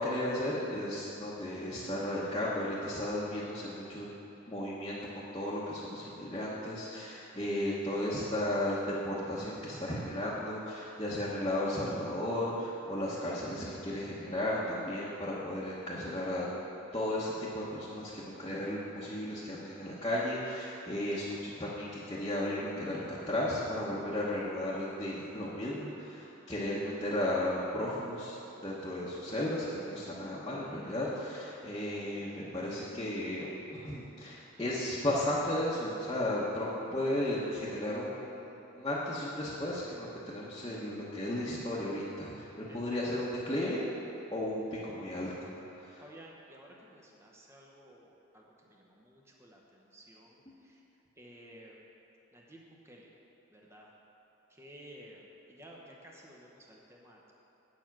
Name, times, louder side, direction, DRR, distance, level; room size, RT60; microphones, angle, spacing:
voice 1, 0.0-4.1 4.5-16.5 16.9-43.8 44.3-45.3 45.8-46.0, left 1 dB, 20° left, -8 dB, 1.0 m, -34 dB
voice 2, 42.7-43.3 46.0-50.8 51.2-51.8 52.3-53.1 53.5-53.9 54.5-57.3, equal, 15° right, -2 dB, 0.9 m, -54 dB
8.7 x 7.1 x 6.0 m, 3.0 s
head